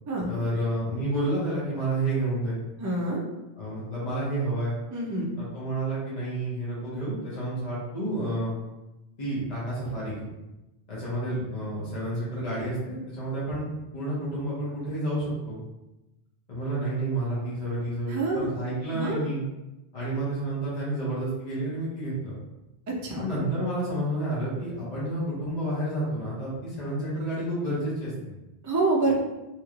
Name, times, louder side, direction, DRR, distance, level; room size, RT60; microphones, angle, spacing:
voice 1, 0.3-2.6 3.6-4.7 5.4-8.5 9.2-10.2 10.9-13.7 13.9-15.6 16.5-19.4 19.9-22.3 23.2-28.1, right 1 dB, 45° left, -8 dB, 1.0 m, -30 dB
voice 2, 2.8-3.2 4.9-5.3 18.1-18.5 18.9-19.2 22.9-23.2 28.6-29.1, right 2 dB, 30° right, -2 dB, 0.3 m, -26 dB
3.1 x 2.9 x 2.4 m, 1.0 s
omnidirectional pair, 1.1 m